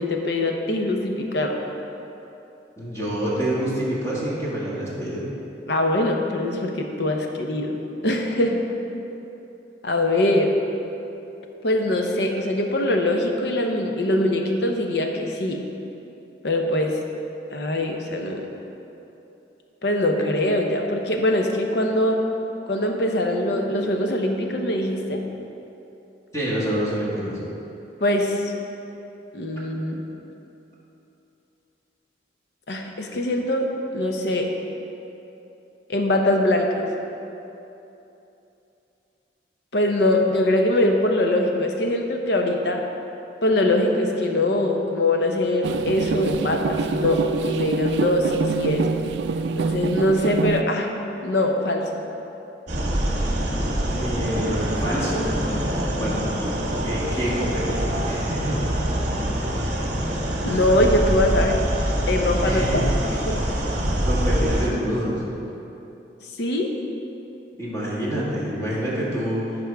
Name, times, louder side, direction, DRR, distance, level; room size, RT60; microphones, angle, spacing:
voice 1, 0.0-1.6 5.7-7.8 8.0-8.6 9.8-10.5 11.6-15.6 16.4-17.0 17.5-18.5 19.8-22.2 22.7-25.2 28.0-28.4 29.3-30.0 32.7-33.7 33.9-34.5 35.9-36.8 39.7-42.8 43.4-48.9 49.6-50.9 51.2-52.0 60.4-61.6 62.1-62.9 63.3-63.4 66.4-66.7, left 1 dB, 70° left, 3 dB, 0.8 m, -22 dB
voice 2, 2.8-5.2 8.9-9.1 26.3-27.4 54.0-55.3 55.9-56.2 56.8-58.6 62.4-62.8 64.0-65.2 67.6-69.6, equal, 20° left, -9 dB, 1.8 m, -27 dB
sound 1, 45.6-50.6, right 5 dB, 75° right, 0.3 m, -26 dB
sound 2, 52.7-64.7, right 1 dB, 40° right, 1.0 m, -25 dB
14.0 x 5.3 x 3.5 m, 2.9 s
head